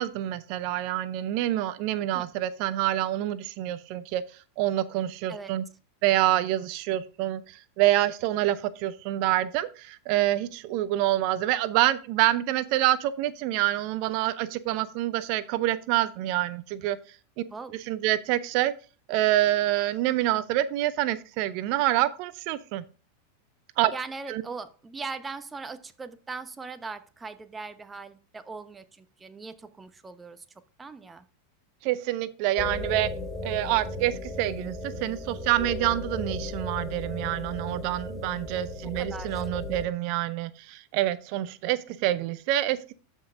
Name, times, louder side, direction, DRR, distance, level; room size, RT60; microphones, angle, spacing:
voice 1, 0.0-4.2 4.6-5.6 6.0-17.0 17.4-17.5 17.9-18.7 19.1-22.8 23.8-23.9 24.3-24.4 31.8-33.1 33.4-42.9, right 14 dB, 50° right, 16 dB, 0.5 m, -27 dB
voice 2, 23.9-30.4 30.8-31.2 38.8-39.4, right 4 dB, 15° right, 11 dB, 0.9 m, -40 dB
sound 1, 32.6-39.8, left 2 dB, 20° left, 1.2 m, -35 dB
13.0 x 5.4 x 2.5 m, 0.36 s
hypercardioid pair, 90°, 0 cm